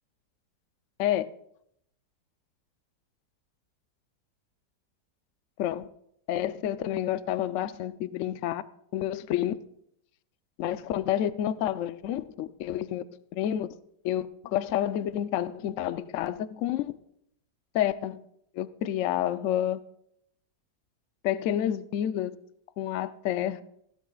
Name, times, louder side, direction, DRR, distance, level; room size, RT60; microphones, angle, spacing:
voice 1, 6.3-8.6 8.9-9.6 10.6-13.0 13.3-13.7 14.0-16.9 17.7-18.2 18.5-19.8 21.2-22.3 22.8-23.6, left 11 dB, 75° left, 0.7 m, -29 dB
20.0 x 16.0 x 2.4 m
omnidirectional pair, 2.0 m